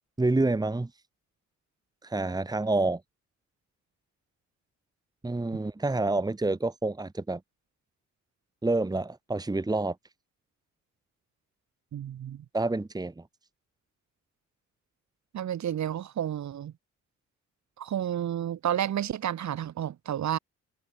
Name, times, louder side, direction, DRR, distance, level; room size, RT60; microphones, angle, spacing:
voice 1, 0.2-0.9 2.0-3.0 5.2-7.4 8.6-10.0 12.5-13.2, right 2 dB, 15° right, 1.6 m, -28 dB
voice 2, 11.9-12.5 15.3-16.7 17.8-20.4, right 10 dB, 65° right, 7.2 m, -31 dB
cardioid pair, 90°, 30 cm